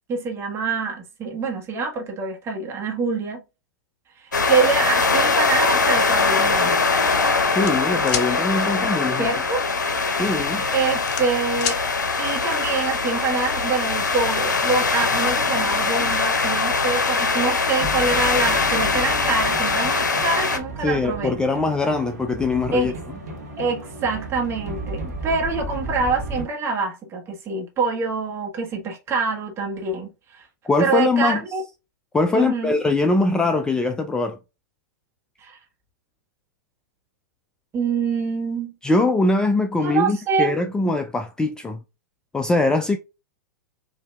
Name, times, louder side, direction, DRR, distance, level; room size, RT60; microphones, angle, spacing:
voice 1, 0.1-3.4 4.2-6.8 9.2-9.6 10.7-11.8 12.2-21.4 22.7-22.9 23.6-30.5 30.8-31.6 32.3-32.8 35.4-35.6 37.7-38.7 39.8-40.5, right 4 dB, 25° right, 1.3 m, -25 dB
sound 1, 4.3-20.6, left 4 dB, 75° left, 0.7 m, -22 dB
voice 2, 7.5-9.3 10.1-10.7 20.8-22.9 30.6-31.4 32.1-34.4 38.8-41.8 42.3-43.0, left 3 dB, 10° left, 0.3 m, -22 dB
sound 2, 7.6-8.3 9.9-10.2 10.6-11.8, left 9 dB, 40° left, 0.7 m, -28 dB
sound 3, 13.1-26.4, right 2 dB, 60° right, 1.3 m, -35 dB
5.0 x 2.7 x 2.3 m
figure-of-eight pair, 100°, 10 cm